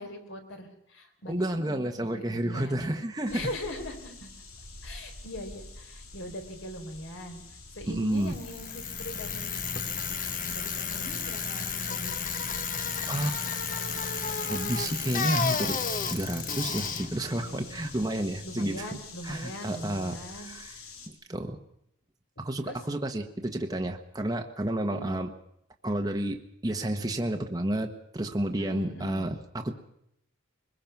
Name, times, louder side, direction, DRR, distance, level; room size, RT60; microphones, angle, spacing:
voice 1, 0.0-2.9 3.3-4.3 4.8-7.4 7.7-9.6 10.1-12.3 18.4-20.9 22.6-22.8 24.9-25.2 28.6-29.3, left 1 dB, 60° left, 5 dB, 4.1 m, -41 dB
voice 2, 1.3-3.4 7.9-8.3 13.1-13.4 14.5-15.8 16.1-18.9 19.2-20.7 21.1-21.6 22.4-25.3 25.8-29.7, right 1 dB, 15° right, 4 dB, 1.2 m, -31 dB
sound 1, 3.3-21.1, left 3 dB, 85° left, 3.8 m, -47 dB
Bicycle, 8.2-18.3, left 5 dB, 40° left, 1.4 m, -32 dB
23.5 x 21.0 x 6.0 m, 0.75 s
head